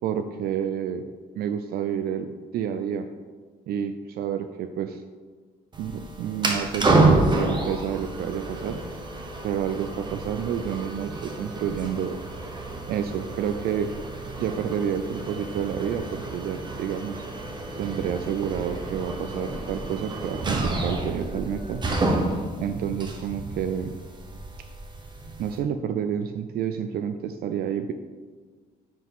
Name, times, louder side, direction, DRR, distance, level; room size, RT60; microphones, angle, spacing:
voice 1, 0.0-1.1 1.3-3.1 3.7-5.0 5.8-8.8 9.4-12.2 12.9-13.9 14.4-17.2 17.8-21.8 22.6-23.9 25.4-27.9, right 8 dB, 65° right, 8 dB, 0.4 m, -29 dB
sound 1, 5.7-25.6, right 2 dB, 25° right, 1.1 m, -29 dB
9.6 x 4.8 x 3.6 m, 1.5 s
cardioid pair, 110°, 17 cm